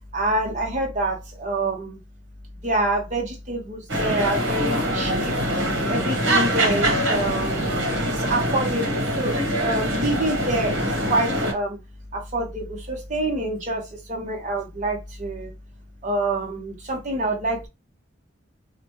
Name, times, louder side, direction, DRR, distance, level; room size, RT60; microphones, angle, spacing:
voice 1, 0.1-2.0 2.6-7.7 8.0-11.8 12.1-15.5 16.0-17.7, right 2 dB, 40° right, 0.9 m, -27 dB
sound 1, 3.9-11.5, equal, 75° right, 1.0 m, -24 dB
2.9 x 2.1 x 2.9 m
head